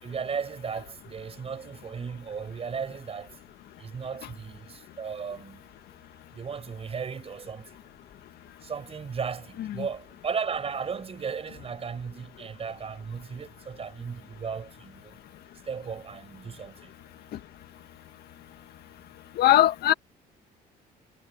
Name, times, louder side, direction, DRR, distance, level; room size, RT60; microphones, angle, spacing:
voice 1, 0.0-3.3 3.8-5.6 6.3-7.7 8.6-15.2 15.7-16.9, right 6 dB, 35° right, 5.3 m, -35 dB
voice 2, 19.4-19.9, left 13 dB, 70° left, 1.9 m, -21 dB
cardioid pair, 110°, 17 cm